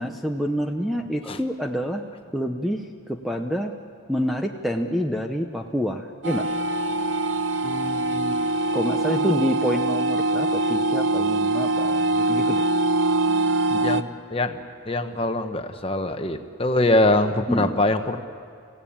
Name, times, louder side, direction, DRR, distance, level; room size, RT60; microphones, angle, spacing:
voice 1, 0.0-2.0 2.3-3.7 4.1-6.5 8.7-12.6 13.7-13.9 17.5-17.8, equal, ahead, 3 dB, 0.7 m, -27 dB
sound 1, 6.2-14.0, right 2 dB, 60° right, 0.7 m, -23 dB
voice 2, 7.6-8.4 9.1-9.3 13.8-18.2, left 1 dB, 25° left, 7 dB, 1.1 m, -24 dB
27.5 x 16.5 x 8.8 m, 2.4 s
head